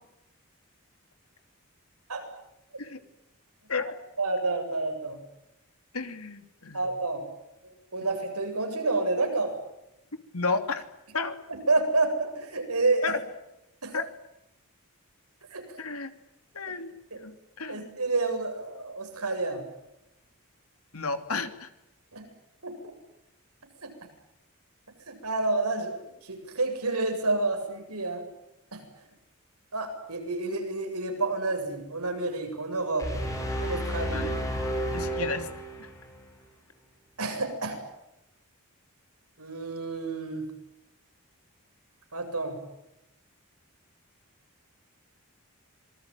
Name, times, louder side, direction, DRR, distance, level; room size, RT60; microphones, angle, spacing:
voice 1, 4.2-5.2 6.7-7.2 7.6-9.5 11.5-13.0 13.8-13.9 15.5-15.6 17.1-17.2 17.7-19.6 22.1-22.3 22.6-22.7 23.8-23.9 25.1-28.2 28.7-28.8 29.7-33.1 33.6-34.3 35.2-35.3 37.2-37.8 39.4-40.5 42.1-42.6, right 3 dB, 90° right, 5 dB, 7.8 m, -29 dB
voice 2, 5.9-6.8 10.3-10.8 11.1-11.4 13.0-13.2 13.9-14.1 15.8-16.1 16.5-18.0 20.9-21.7 34.1-34.3 34.9-35.5 35.8-35.9, left 4 dB, 75° left, 8 dB, 3.0 m, -32 dB
sound 1, 33.0-36.2, equal, 15° left, 7.9 m, -31 dB
26.5 x 21.0 x 9.3 m, 0.89 s
head